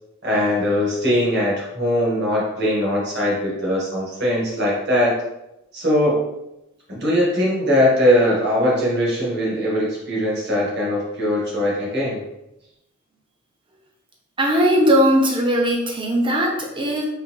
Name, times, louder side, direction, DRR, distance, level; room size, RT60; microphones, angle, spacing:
voice 1, 0.2-5.1 5.7-6.2 6.9-12.2, left 1 dB, 50° right, -5 dB, 1.4 m, -20 dB
voice 2, 14.4-17.0, equal, 25° right, -1 dB, 0.7 m, -19 dB
3.8 x 3.4 x 3.0 m, 0.90 s
head